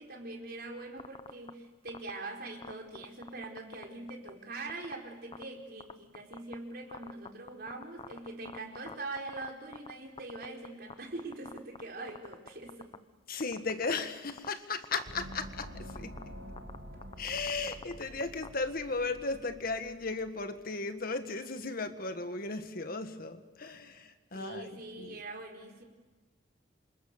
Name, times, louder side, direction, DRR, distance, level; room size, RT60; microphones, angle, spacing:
voice 1, 0.0-12.9 24.3-25.8, right 2 dB, 60° right, 2 dB, 4.7 m, -43 dB
sound 1, 1.0-1.5 1.9-2.1 2.6-4.3 4.7-4.9 5.3-5.4 5.8-6.5 6.9-9.9 10.2-10.9 11.2-11.8 12.1-13.0 13.4-14.0 14.3-14.5 14.8-15.3 15.6-15.7 15.9-16.2 16.6-16.8 17.0-18.5, left 4 dB, 30° left, 0.9 m, -44 dB
voice 2, 13.3-16.2 17.2-25.2, left 3 dB, 55° left, 8 dB, 1.7 m, -36 dB
Gong, 15.1-20.3, equal, 80° right, 6.0 m, -48 dB
28.0 x 26.5 x 6.8 m, 1.3 s
head